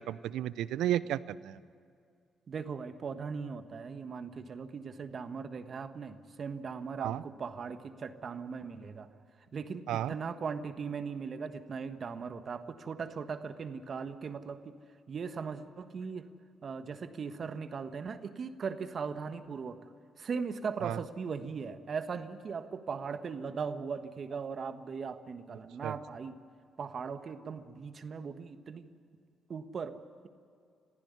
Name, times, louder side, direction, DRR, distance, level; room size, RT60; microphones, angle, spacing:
voice 1, 0.0-1.6 7.0-7.2 9.9-10.2 20.8-21.0 25.8-26.0, right 12 dB, 75° right, 18 dB, 0.5 m, -33 dB
voice 2, 2.5-9.1 9.5-14.8 15.1-16.3 16.6-19.8 20.2-26.4 26.8-28.9 29.5-29.9, right 5 dB, 55° right, 9 dB, 1.4 m, -39 dB
22.5 x 15.0 x 9.6 m, 2.3 s
supercardioid pair, 55°, 0 cm